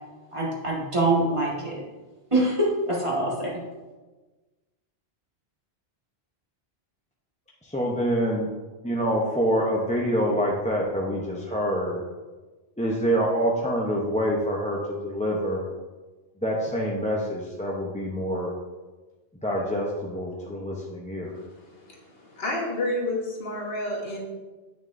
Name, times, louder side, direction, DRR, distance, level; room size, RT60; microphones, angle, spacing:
voice 1, 0.3-1.8 2.3-3.6, right 2 dB, 30° right, -5 dB, 1.7 m, -24 dB
voice 2, 7.6-8.5 8.8-12.0 12.8-15.6 16.4-18.5 19.4-21.4, equal, 10° left, -3 dB, 0.6 m, -26 dB
voice 3, 21.3-24.3, left 1 dB, 65° left, -2 dB, 1.6 m, -31 dB
8.9 x 6.3 x 2.6 m, 1.2 s
omnidirectional pair, 1.1 m